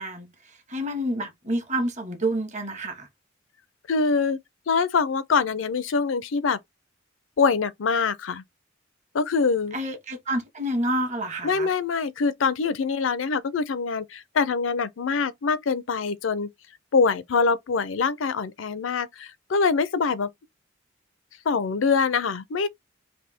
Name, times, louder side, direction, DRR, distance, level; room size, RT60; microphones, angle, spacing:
voice 1, 0.0-3.1 9.7-11.7, right 1 dB, 40° right, 1.3 m, -29 dB
voice 2, 3.9-4.4 4.7-6.6 7.4-8.4 9.1-9.8 11.4-16.5 16.9-20.3 21.5-22.7, left 5 dB, 75° left, 0.5 m, -24 dB
3.4 x 2.6 x 4.2 m
head